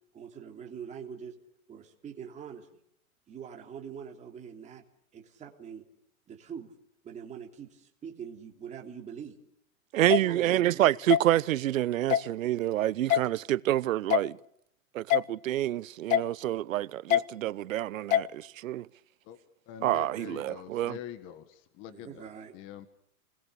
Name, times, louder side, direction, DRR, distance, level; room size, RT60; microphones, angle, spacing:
voice 1, 0.1-1.4 1.7-2.8 3.3-4.8 5.1-5.9 6.3-6.7 7.0-9.4 10.0-10.9 21.9-22.5, right 7 dB, 15° right, 3.1 m, -43 dB
voice 2, 9.9-14.4 14.9-18.9 19.8-21.0, right 13 dB, 65° right, 0.9 m, -28 dB
sound 1, 10.1-10.2 11.1-11.2 12.1-12.3 13.1-13.2 14.1-14.3 15.1-15.2 16.1-16.3 17.1-17.2 18.1-18.3, left 12 dB, 65° left, 1.0 m, -23 dB
voice 3, 19.7-22.3 22.5-22.9, left 11 dB, 25° left, 1.7 m, -44 dB
29.0 x 21.0 x 6.9 m
hypercardioid pair, 150°, 43 cm